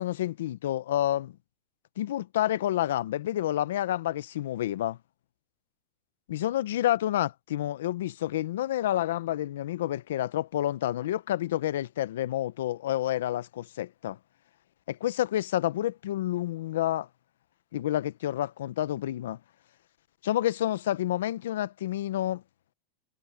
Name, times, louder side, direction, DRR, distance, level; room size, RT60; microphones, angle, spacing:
voice 1, 0.0-1.4 2.0-5.0 6.3-14.2 14.9-17.1 17.7-19.4 20.2-22.4, left 13 dB, 85° left, 0.7 m, -29 dB
supercardioid pair, 170°, 0 cm